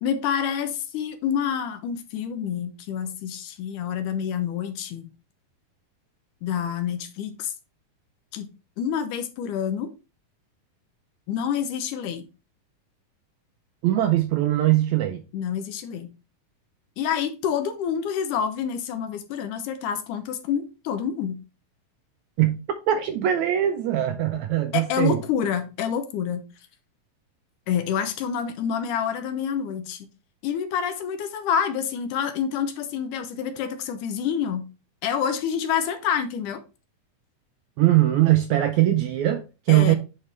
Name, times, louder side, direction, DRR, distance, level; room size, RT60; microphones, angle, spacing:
voice 1, 0.0-5.1 6.4-7.5 8.3-8.5 8.8-9.9 11.3-12.2 15.3-16.1 17.0-21.4 24.7-26.4 27.7-30.1 30.4-34.6 35.0-36.6 39.7-40.0, left 8 dB, 75° left, 2.2 m, -27 dB
voice 2, 13.8-15.2 22.4-22.6 22.9-25.2 37.8-40.0, right 13 dB, 80° right, 1.7 m, -21 dB
8.7 x 4.5 x 3.3 m
omnidirectional pair, 3.8 m